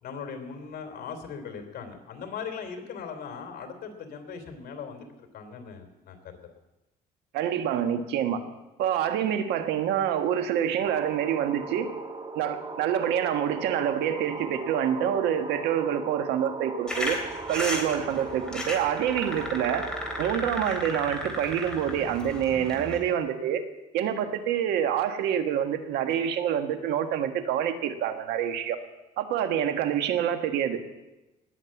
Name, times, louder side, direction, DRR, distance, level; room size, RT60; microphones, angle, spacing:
voice 1, 0.0-6.5, left 6 dB, 60° left, 6 dB, 3.1 m, -39 dB
voice 2, 7.3-8.4 8.8-11.9 12.3-17.2 17.5-19.9 20.2-23.6 23.9-28.8 29.2-30.9, right 9 dB, 85° right, 8 dB, 1.5 m, -27 dB
sound 1, 10.8-20.3, right 3 dB, 30° right, 2.5 m, -39 dB
sound 2, 16.9-23.0, left 1 dB, 5° left, 3.8 m, -35 dB
19.0 x 7.6 x 8.5 m, 1.0 s
cardioid pair, 110°, 17 cm